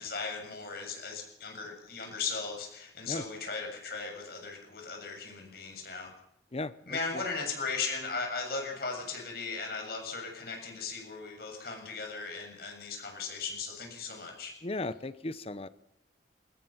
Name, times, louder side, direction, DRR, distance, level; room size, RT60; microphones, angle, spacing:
voice 1, 0.0-6.1 6.9-14.5, left 4 dB, 55° left, 2 dB, 7.5 m, -37 dB
voice 2, 6.5-7.2 14.6-15.7, left 2 dB, 35° left, 14 dB, 0.8 m, -36 dB
24.0 x 20.5 x 5.9 m, 0.82 s
head